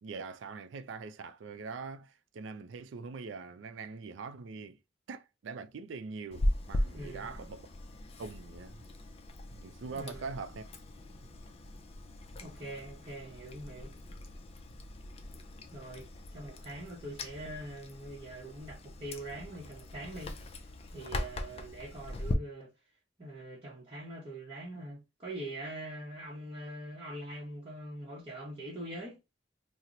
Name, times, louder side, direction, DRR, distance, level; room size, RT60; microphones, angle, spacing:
voice 1, 0.0-4.8 5.1-7.7 8.2-8.9 9.5-10.7 21.5-21.6, right 4 dB, 85° right, 0.4 m, -43 dB
Chewing mastication, 6.3-22.3, left 1 dB, 30° left, 0.4 m, -40 dB
voice 2, 6.9-7.3 9.9-10.3 12.4-13.9 15.7-20.4 20.9-22.7 23.2-29.2, right 1 dB, 30° right, 0.8 m, -43 dB
2.9 x 2.1 x 3.7 m
head